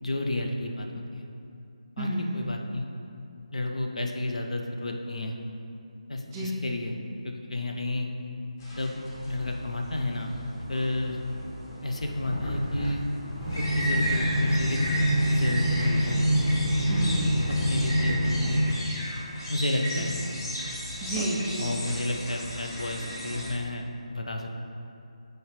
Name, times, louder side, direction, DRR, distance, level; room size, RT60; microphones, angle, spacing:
voice 1, 0.0-1.2 2.0-2.8 3.5-5.3 6.1-7.0 7.2-8.1 8.8-8.9 9.2-10.3 10.7-11.2 11.8-13.1 13.6-14.8 15.3-16.3 17.5-18.7 19.5-20.4 21.6-23.8 24.1-24.5, left 2 dB, 70° left, 2 dB, 0.7 m, -31 dB
voice 2, 2.0-2.5 6.3-6.6 16.9-17.5 19.9-20.1 21.0-21.7, right 1 dB, 15° right, -6 dB, 0.4 m, -31 dB
sound 1, 8.6-23.5, equal, 30° left, 1.5 m, -35 dB
sound 2, 13.4-18.6, equal, 5° left, 1.2 m, -25 dB
8.0 x 4.6 x 3.1 m, 2.6 s
figure-of-eight pair, 155°, 4 cm